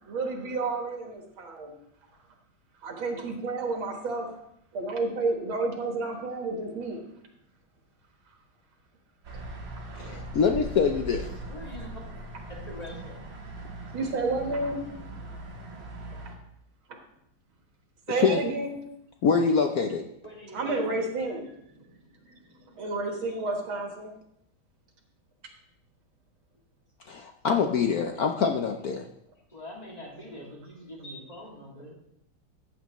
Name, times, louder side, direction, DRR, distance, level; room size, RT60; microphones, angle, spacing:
voice 1, 0.0-1.7 2.8-4.4 4.7-7.0 9.9-10.2 13.9-14.8 16.9-17.0 18.1-18.8 20.5-21.5 21.8-21.9 22.2-22.4 22.8-24.1, right 3 dB, 85° right, 2 dB, 2.3 m, -31 dB
sound 1, 9.2-16.3, right 2 dB, 65° right, 2.3 m, -40 dB
voice 2, 10.0-11.3 18.1-18.4 19.2-20.0 27.1-29.0, left 5 dB, 65° left, 4 dB, 1.0 m, -25 dB
voice 3, 11.4-12.0 12.5-13.1 20.2-20.8 29.5-31.9, equal, 20° left, -2 dB, 2.3 m, -43 dB
14.5 x 8.1 x 3.1 m, 0.76 s
omnidirectional pair, 2.2 m